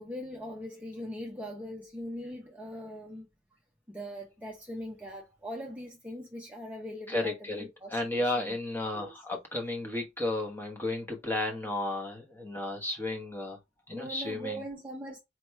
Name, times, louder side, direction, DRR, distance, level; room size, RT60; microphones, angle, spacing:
voice 1, 0.0-3.3 3.9-8.5 8.9-9.1 13.9-15.2, equal, 10° right, 0.7 m, -41 dB
voice 2, 7.1-13.6 13.9-14.6, left 2 dB, 10° left, 1.0 m, -33 dB
4.5 x 2.9 x 3.2 m
head